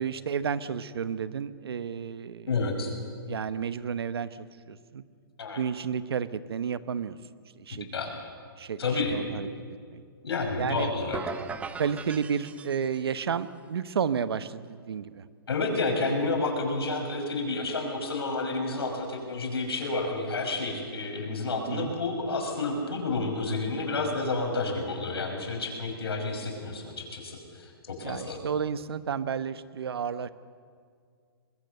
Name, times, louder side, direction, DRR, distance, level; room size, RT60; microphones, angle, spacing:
voice 1, 0.0-2.5 3.2-5.0 5.6-7.2 7.6-7.9 8.6-8.8 9.1-9.5 9.9-10.0 10.6-10.9 11.8-15.2 21.7-22.0 28.0-30.3, right 7 dB, 80° right, 14 dB, 1.0 m, -31 dB
voice 2, 2.5-2.9 5.4-5.6 7.7-8.1 8.8-9.2 10.2-11.2 15.5-28.4, left 3 dB, 85° left, 3 dB, 5.9 m, -30 dB
sound 1, 11.1-13.2, right 5 dB, 10° right, 0.7 m, -38 dB
23.0 x 21.5 x 6.7 m, 2.1 s
hypercardioid pair, 140°, 13 cm